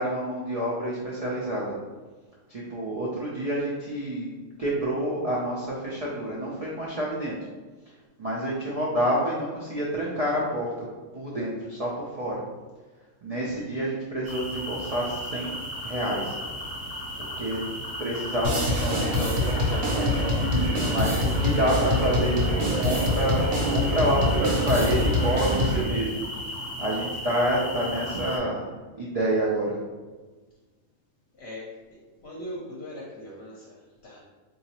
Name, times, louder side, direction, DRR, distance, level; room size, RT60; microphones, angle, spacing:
voice 1, 0.0-1.7 2.5-4.3 4.6-7.4 8.2-10.9 11.1-12.4 13.2-15.6 15.8-16.4 17.4-17.7 18.0-20.2 20.9-26.2 26.8-28.7 28.9-29.8, right 1 dB, 60° right, -5 dB, 0.4 m, -28 dB
sound 1, 14.2-28.4, equal, 15° right, 0.6 m, -35 dB
sound 2, 18.4-25.8, left 1 dB, 80° right, 1.1 m, -25 dB
voice 2, 31.4-31.7 32.2-34.2, equal, 60° left, -5 dB, 0.9 m, -40 dB
3.8 x 2.7 x 2.8 m, 1.3 s
omnidirectional pair, 1.4 m